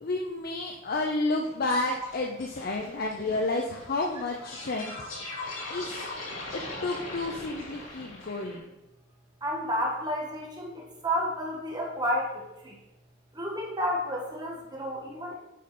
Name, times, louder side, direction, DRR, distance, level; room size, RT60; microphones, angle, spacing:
voice 1, 0.0-4.9 5.7-6.1 6.5-8.6, left 2 dB, 50° left, 1 dB, 0.7 m, -31 dB
sound 1, 1.4-8.6, left 2 dB, 70° left, 2.9 m, -41 dB
voice 2, 9.4-12.3 12.6-12.7 13.3-15.3, equal, 20° right, -2 dB, 1.5 m, -31 dB
8.5 x 5.2 x 4.3 m, 0.97 s
head